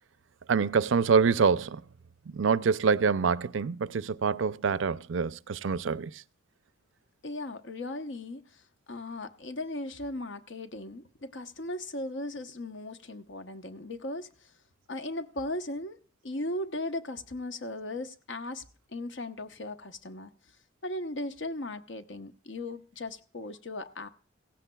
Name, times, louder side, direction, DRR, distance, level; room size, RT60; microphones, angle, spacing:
voice 1, 0.5-1.8 2.3-6.1, right 5 dB, 75° right, 0.5 m, -26 dB
voice 2, 7.2-8.6 8.9-14.5 14.9-16.0 16.2-18.6 18.9-20.3 20.8-24.1, left 1 dB, 65° left, 1.0 m, -37 dB
16.5 x 15.5 x 2.3 m
head